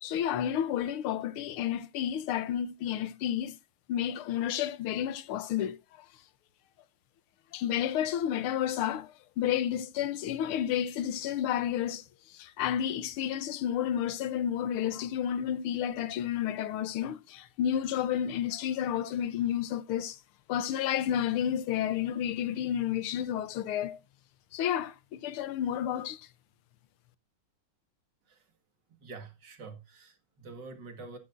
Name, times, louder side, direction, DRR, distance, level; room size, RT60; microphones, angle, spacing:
voice 1, 0.0-3.6 3.9-5.8 7.5-12.0 12.3-20.2 20.5-24.0 24.5-26.2, left 10 dB, 90° left, 1.7 m, -31 dB
voice 2, 29.0-31.2, right 4 dB, 55° right, 2.4 m, -46 dB
12.5 x 9.7 x 2.6 m
omnidirectional pair, 2.3 m